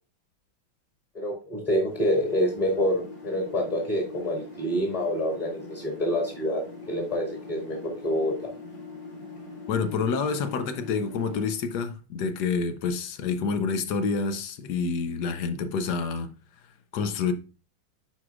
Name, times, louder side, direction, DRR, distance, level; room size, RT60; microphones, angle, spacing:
voice 1, 1.1-8.3, equal, 20° left, 1.7 m, -27 dB
sound 1, 1.9-11.5, left 4 dB, 50° left, 3.2 m, -42 dB
voice 2, 9.7-16.3 16.9-17.3, left 5 dB, 70° left, 1.1 m, -28 dB
9.8 x 4.7 x 2.4 m
omnidirectional pair, 2.1 m